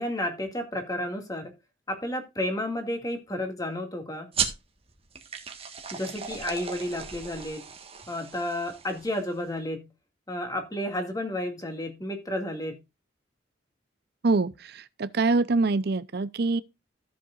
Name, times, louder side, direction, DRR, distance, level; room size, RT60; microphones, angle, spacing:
voice 1, 0.0-1.5 1.9-4.3 5.9-7.6 8.1-9.8 10.3-12.8, left 1 dB, 20° left, 2.1 m, -32 dB
sound 1, 4.3-9.4, right 6 dB, 30° right, 1.5 m, -36 dB
voice 2, 14.2-16.6, right 3 dB, 55° right, 0.6 m, -25 dB
14.0 x 7.5 x 2.5 m
head